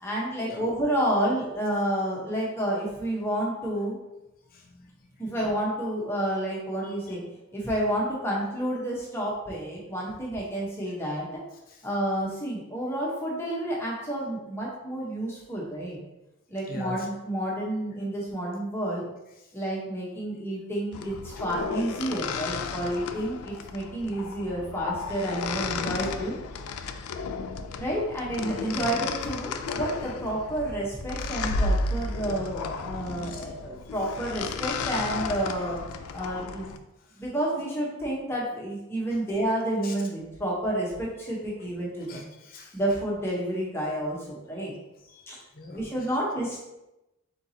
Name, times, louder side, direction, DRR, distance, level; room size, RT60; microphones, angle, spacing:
voice 1, 0.0-4.0 5.2-7.2 7.5-11.3 11.8-16.0 16.5-19.1 19.5-26.4 27.7-35.8 36.1-36.7 37.2-42.2 42.7-44.7 45.3-45.4 45.7-46.6, right 1 dB, 10° left, -5 dB, 0.8 m, -30 dB
voice 2, 4.5-4.9 6.8-6.9 11.7-11.8 16.7-17.1 28.8-28.9 33.3-33.4 39.8-39.9 42.1-42.8 45.0-45.8 46.1-46.2, left 2 dB, 40° left, 1 dB, 0.7 m, -42 dB
sound 1, 20.9-36.8, left 4 dB, 85° left, 0.4 m, -33 dB
4.4 x 4.0 x 2.7 m, 0.95 s
head